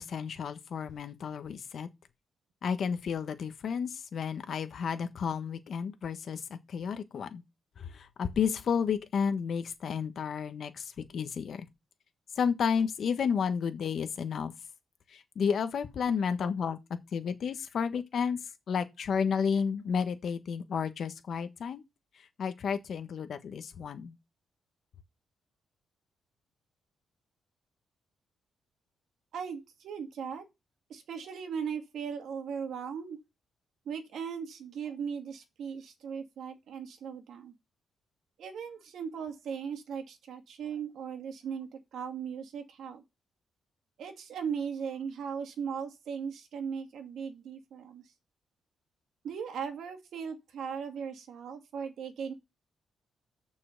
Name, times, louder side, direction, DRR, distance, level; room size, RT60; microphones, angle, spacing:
voice 1, 0.0-1.9 2.6-7.4 7.8-11.7 12.4-14.5 15.1-16.8 17.1-18.4 18.7-21.8 22.2-24.1, left 6 dB, 65° left, 1.4 m, -32 dB
voice 2, 29.3-30.4 30.9-33.2 33.9-37.5 38.4-43.0 44.0-48.1 49.2-52.3, right 7 dB, 75° right, 2.1 m, -38 dB
6.9 x 5.7 x 6.5 m
cardioid pair, 85°, 0 cm